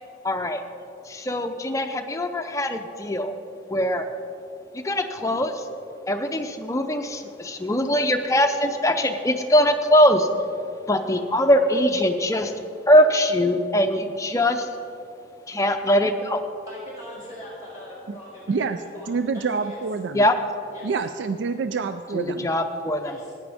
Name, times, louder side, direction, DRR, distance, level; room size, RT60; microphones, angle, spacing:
voice 1, 0.2-0.6 1.1-3.4 3.7-4.0 4.7-5.6 6.1-10.3 10.9-12.5 12.9-14.7 15.5-16.4 20.1-20.3 22.1-23.1, equal, 15° left, 6 dB, 0.6 m, -21 dB
voice 2, 16.7-19.8 20.7-20.9 23.0-23.3, left 1 dB, 20° right, -7 dB, 2.6 m, -41 dB
voice 3, 18.5-20.2 20.8-22.5, right 4 dB, 80° right, 9 dB, 0.4 m, -27 dB
14.5 x 9.9 x 3.5 m, 2.5 s
head